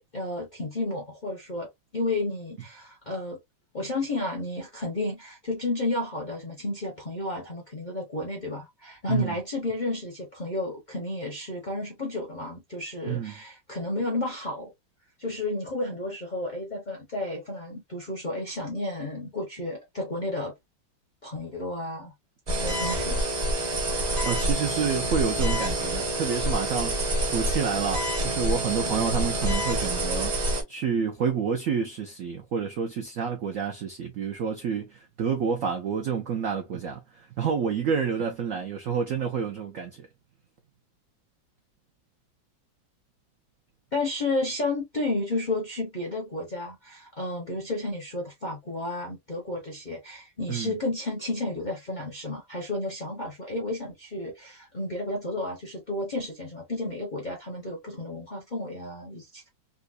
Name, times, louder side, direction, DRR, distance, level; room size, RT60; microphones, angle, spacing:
voice 1, 0.0-3.4 3.7-14.7 15.2-20.5 21.2-22.1 22.6-23.2 43.9-59.5, left 2 dB, 40° left, 0.6 m, -32 dB
sound 1, 22.5-30.6, right 1 dB, 35° right, 0.7 m, -27 dB
voice 2, 24.2-40.1 50.5-50.7, right 6 dB, 75° right, 0.7 m, -29 dB
3.9 x 2.2 x 2.5 m
omnidirectional pair, 2.1 m